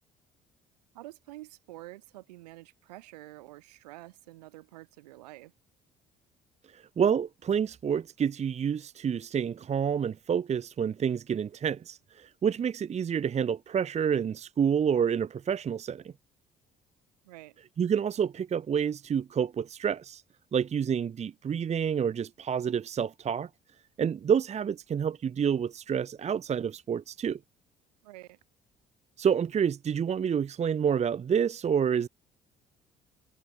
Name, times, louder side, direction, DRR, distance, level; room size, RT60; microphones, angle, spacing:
voice 1, 0.9-5.5 17.2-17.6 28.0-28.4, right 18 dB, 70° right, 6.3 m, -48 dB
voice 2, 6.7-16.1 17.8-20.2 20.5-23.5 24.0-27.4 29.2-32.1, right 7 dB, 30° right, 0.9 m, -28 dB
figure-of-eight pair, 50°, 21 cm